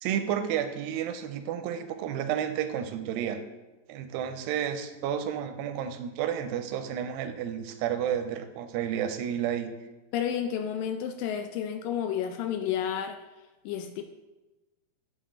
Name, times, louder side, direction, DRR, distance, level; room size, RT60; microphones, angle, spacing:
voice 1, 0.0-3.4 3.9-9.8, right 9 dB, 85° right, 8 dB, 2.3 m, -31 dB
voice 2, 10.1-13.2 13.7-14.0, left 9 dB, 80° left, 7 dB, 2.0 m, -31 dB
9.1 x 6.5 x 3.7 m, 1.1 s
omnidirectional pair, 4.3 m